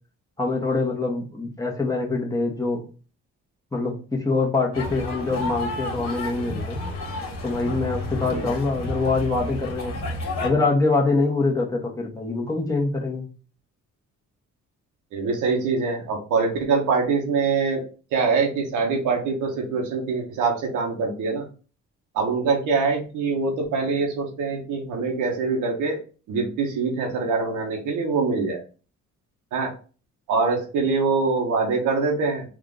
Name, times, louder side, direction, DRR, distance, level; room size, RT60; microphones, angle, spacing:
voice 1, 0.4-2.8 3.7-6.8 7.4-9.9 10.4-13.2, left 3 dB, 10° left, -1 dB, 1.2 m, -24 dB
sound 1, 4.7-10.5, left 1 dB, 55° left, 1.6 m, -31 dB
voice 2, 15.1-17.8 18.1-21.4 22.1-26.0 26.3-28.6 29.5-29.7 30.3-32.4, right 4 dB, 90° right, 0 dB, 1.0 m, -24 dB
3.6 x 2.5 x 3.8 m, 0.37 s
cardioid pair, 90°, 30 cm